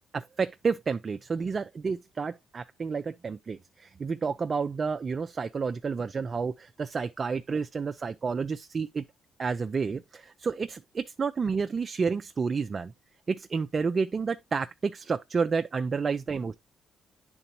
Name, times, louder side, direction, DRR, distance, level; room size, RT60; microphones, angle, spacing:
voice 1, 0.1-9.1 9.4-12.9 13.3-16.5, right 5 dB, 40° right, 0.4 m, -30 dB
9.8 x 3.9 x 2.9 m
cardioid pair, 90°, 0 cm